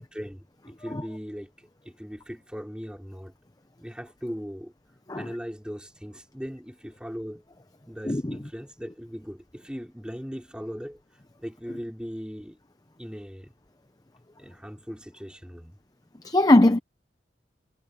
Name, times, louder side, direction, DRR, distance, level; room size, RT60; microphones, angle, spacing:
voice 1, 0.0-1.5 1.8-3.3 3.8-4.7 5.1-7.4 7.9-11.0 11.4-12.6 13.0-13.5 14.4-15.8, equal, 5° right, 4.7 m, -39 dB
voice 2, 8.0-8.4 16.2-16.8, left 1 dB, 20° left, 0.7 m, -19 dB
head